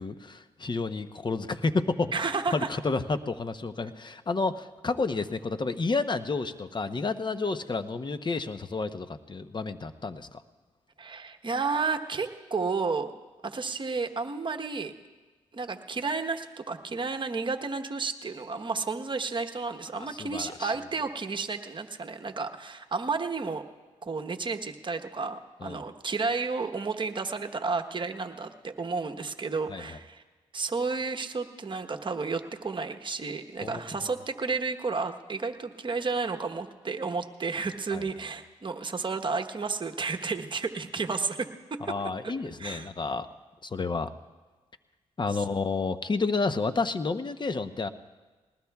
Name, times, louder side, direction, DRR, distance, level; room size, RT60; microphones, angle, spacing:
voice 1, 0.0-2.3 2.5-10.4 20.2-20.7 25.6-25.8 29.7-29.8 33.6-33.8 37.9-38.0 41.9-43.3 43.6-44.1 45.2-47.9, left 3 dB, 35° left, 11 dB, 0.8 m, -30 dB
voice 2, 2.1-2.7 11.0-13.1 13.4-14.9 15.5-23.6 24.0-30.2 30.5-41.5 41.9-42.0 42.2-42.3 42.6-42.9 45.3-45.6, right 4 dB, 40° right, 5 dB, 1.1 m, -32 dB
20.5 x 19.5 x 2.4 m, 1.3 s
supercardioid pair, 55°, 13 cm